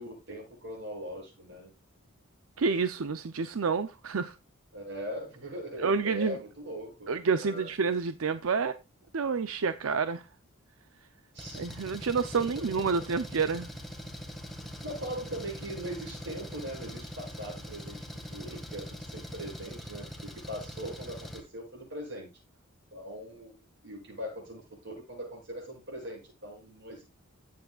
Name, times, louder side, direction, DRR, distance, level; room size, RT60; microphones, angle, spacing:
voice 1, 0.0-1.7 4.7-7.7 11.3-11.7 12.3-13.1 14.8-22.3 22.9-27.0, equal, 55° right, 7.6 m, -41 dB
voice 2, 2.6-4.4 5.8-6.4 7.1-8.7 9.1-10.2 11.5-13.7, right 5 dB, 85° right, 0.6 m, -29 dB
Engine, 11.4-21.4, equal, ahead, 1.8 m, -42 dB
17.0 x 8.3 x 2.4 m
head